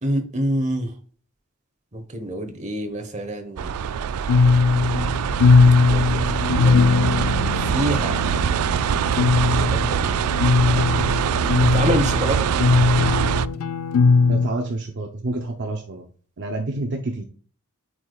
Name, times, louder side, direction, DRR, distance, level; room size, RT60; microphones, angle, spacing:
voice 1, 0.0-0.9 1.9-3.7 5.9-6.8 7.7-8.2 9.7-10.1 11.5-12.5, right 1 dB, 30° right, 6 dB, 1.1 m, -26 dB
sound 1, 3.6-13.5, right 7 dB, 80° right, 0.3 m, -23 dB
sound 2, 4.3-14.5, left 4 dB, 80° left, 0.4 m, -19 dB
voice 2, 14.3-16.0 16.4-17.3, right 2 dB, 50° right, 3 dB, 0.7 m, -28 dB
8.5 x 4.8 x 2.3 m, 0.43 s
head